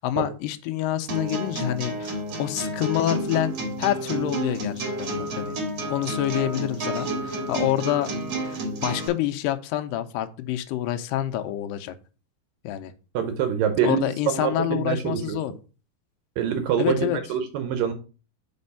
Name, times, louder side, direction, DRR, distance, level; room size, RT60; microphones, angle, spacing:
voice 1, 0.0-3.5 3.8-5.6 5.9-8.1 8.4-11.9 12.6-12.9 13.8-15.5 16.8-17.2, left 12 dB, 80° left, 7 dB, 2.0 m, -27 dB
sound 1, 1.1-9.1, right 1 dB, 50° right, 1.8 m, -30 dB
voice 2, 13.1-14.0 14.3-15.4 16.4-17.9, right 8 dB, 75° right, 8 dB, 2.1 m, -25 dB
5.4 x 4.3 x 5.4 m, 0.35 s
omnidirectional pair, 4.5 m